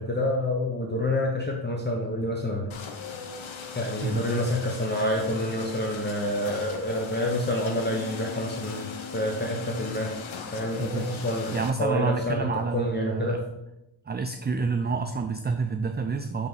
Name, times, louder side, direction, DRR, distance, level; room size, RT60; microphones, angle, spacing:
voice 1, 0.0-2.7 3.7-10.1 10.5-13.4, left 1 dB, 20° left, 0 dB, 0.9 m, -28 dB
sound 1, 2.7-11.7, left 6 dB, 80° left, 0.9 m, -38 dB
voice 2, 11.5-13.4 14.1-16.5, right 4 dB, 25° right, 6 dB, 0.3 m, -28 dB
9.4 x 3.6 x 4.0 m, 0.89 s
wide cardioid pair, 100°, 47 cm